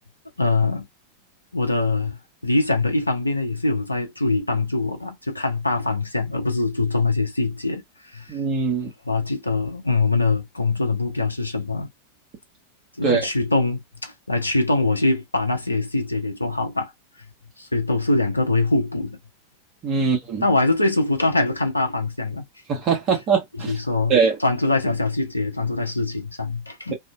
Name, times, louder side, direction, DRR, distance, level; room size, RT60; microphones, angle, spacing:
voice 1, 0.4-0.8 1.5-2.2 2.4-7.8 8.1-8.3 9.1-11.9 13.0-16.9 17.6-19.2 20.0-20.2 20.4-22.4 23.6-24.1 24.4-26.9, left 3 dB, 85° left, 0.7 m, -23 dB
voice 2, 8.3-8.9 13.0-13.2 19.8-20.4 22.7-23.7 24.1-24.4, right 5 dB, 35° right, 1.1 m, -21 dB
2.7 x 2.6 x 2.2 m
figure-of-eight pair, 90°, 0 cm